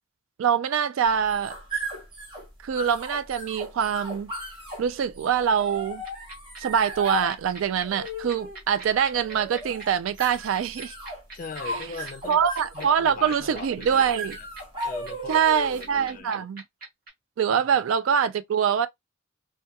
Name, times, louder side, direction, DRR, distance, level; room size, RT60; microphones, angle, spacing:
voice 1, 0.4-1.6 2.6-4.3 4.8-6.0 6.6-11.0 11.7-11.9 12.3-14.4 15.3-16.6 17.4-18.9, right 8 dB, 75° right, 0.3 m, -24 dB
sound 1, 1.1-16.0, equal, 25° right, 0.7 m, -37 dB
sound 2, 6.0-17.1, right 3 dB, 45° right, 1.0 m, -41 dB
voice 2, 11.3-12.4 12.7-14.1 14.8-16.5, left 5 dB, 40° left, 0.4 m, -40 dB
2.2 x 2.2 x 2.7 m
head